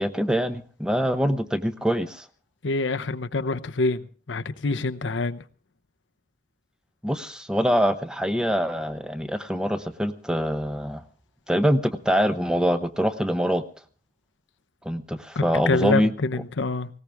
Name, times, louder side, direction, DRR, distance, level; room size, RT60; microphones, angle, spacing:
voice 1, 0.0-2.3 7.0-11.0 11.5-13.6 14.8-16.1, equal, 5° right, 0.8 m, -24 dB
voice 2, 2.6-5.4 15.4-16.9, left 3 dB, 80° left, 0.8 m, -26 dB
19.0 x 17.5 x 3.5 m
head